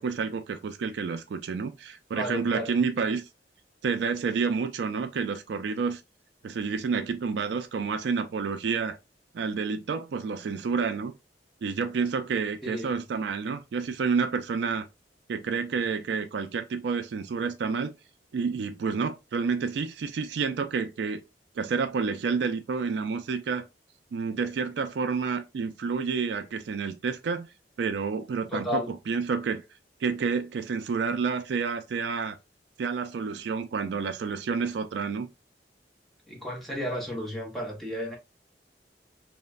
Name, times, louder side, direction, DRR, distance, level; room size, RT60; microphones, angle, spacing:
voice 1, 0.0-3.3 3.8-6.0 6.4-9.0 9.3-11.1 11.6-14.9 15.3-17.9 18.3-21.2 21.6-23.6 24.1-27.5 27.8-29.6 30.0-32.4 32.8-35.3, right 5 dB, 70° right, 0.3 m, -29 dB
voice 2, 2.1-2.7 12.6-12.9 28.5-28.9 36.3-38.2, left 1 dB, ahead, 0.8 m, -33 dB
3.0 x 2.1 x 2.3 m
head